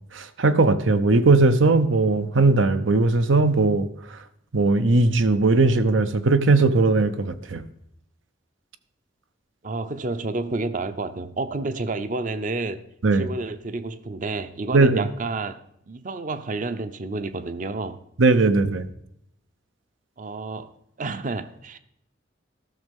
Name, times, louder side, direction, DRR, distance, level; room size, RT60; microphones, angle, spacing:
voice 1, 0.2-3.9 4.5-7.7 13.0-13.3 14.7-15.1 18.2-18.9, right 3 dB, 85° right, 0.7 m, -19 dB
voice 2, 9.6-12.8 13.1-18.0 20.2-20.7 21.0-21.8, right 3 dB, 45° right, 0.6 m, -30 dB
13.5 x 6.5 x 5.3 m
head